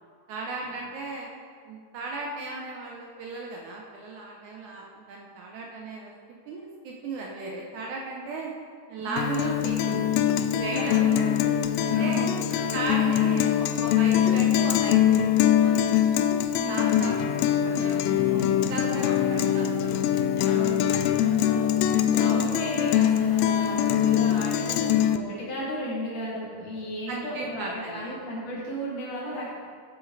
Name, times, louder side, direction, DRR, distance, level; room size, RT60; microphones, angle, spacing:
voice 1, 0.3-1.3 1.6-6.1 6.5-8.5 8.9-10.1 10.5-11.4 11.8-12.2 12.7-16.0 16.5-18.4 18.7-20.1 21.0-21.2 27.1-28.1, right 3 dB, 70° right, -1 dB, 2.0 m, -36 dB
voice 2, 9.0-9.4 10.7-13.5 16.6-17.0 18.0-18.7 20.3-29.5, equal, 65° left, -7 dB, 4.0 m, -35 dB
Guitar, 9.2-25.2, left 10 dB, 80° left, 2.1 m, -23 dB
12.5 x 7.4 x 4.0 m, 2.1 s
omnidirectional pair, 4.1 m